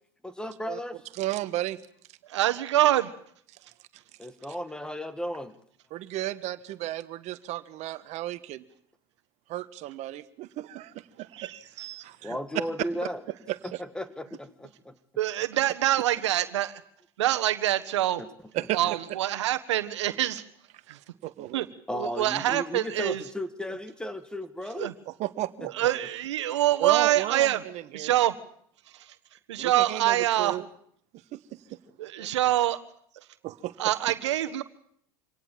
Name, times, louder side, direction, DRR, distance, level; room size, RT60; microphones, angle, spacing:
voice 1, 0.2-1.0 4.2-5.6 12.2-13.2 13.8-15.0 18.2-18.3 21.9-24.9 32.2-32.3, equal, 5° left, 12 dB, 1.8 m, -35 dB
voice 2, 1.2-1.8 5.9-8.6 9.5-11.5 12.0-12.4 13.5-13.6 18.5-18.8 21.2-21.7 25.1-25.7 26.8-28.1 29.6-30.7 31.3-31.8 33.4-33.7, right 15 dB, 50° right, 13 dB, 1.4 m, -33 dB
voice 3, 2.3-3.1 11.3-12.0 15.2-16.8 17.2-18.2 18.7-20.4 20.9-21.0 21.5-21.7 21.9-23.2 24.8-24.9 25.7-27.6 27.9-28.3 28.9-29.1 29.5-30.6 32.0-32.8 33.8-34.6, right 13 dB, 85° right, 10 dB, 1.4 m, -25 dB
25.5 x 18.0 x 7.5 m, 0.67 s
hypercardioid pair, 100°, 14 cm